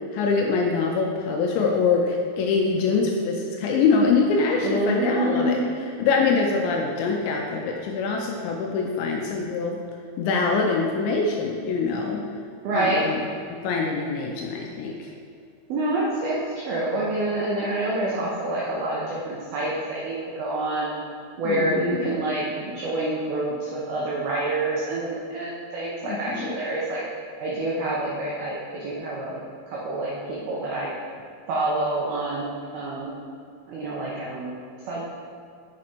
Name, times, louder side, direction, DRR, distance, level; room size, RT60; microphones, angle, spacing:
voice 1, 0.1-5.6 6.0-9.8 10.2-12.2 12.7-13.2 13.5-15.1 21.5-22.1 26.1-26.5, left 4 dB, 80° left, 1 dB, 2.7 m, -24 dB
voice 2, 4.6-5.6 12.6-13.1 15.7-20.9 21.4-27.0 27.4-30.9 31.5-33.1 33.7-34.5 34.8-35.0, right 2 dB, 85° right, -5 dB, 2.1 m, -27 dB
6.8 x 6.3 x 4.3 m, 2.3 s
omnidirectional pair, 5.6 m